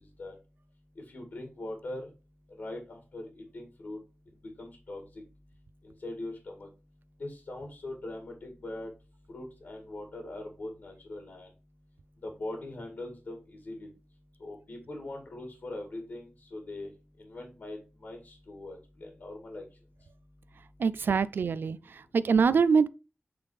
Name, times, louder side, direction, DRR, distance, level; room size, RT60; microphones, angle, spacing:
voice 1, 1.1-2.1 2.6-3.2 3.5-4.0 4.6-5.0 6.0-6.7 7.2-8.9 9.3-11.5 12.2-13.9 14.4-16.2 16.5-16.9 17.3-19.6, left 2 dB, 70° left, 2.1 m, -41 dB
voice 2, 20.8-22.9, right 5 dB, 85° right, 0.4 m, -24 dB
8.6 x 3.6 x 4.8 m
wide cardioid pair, 105°, 3 cm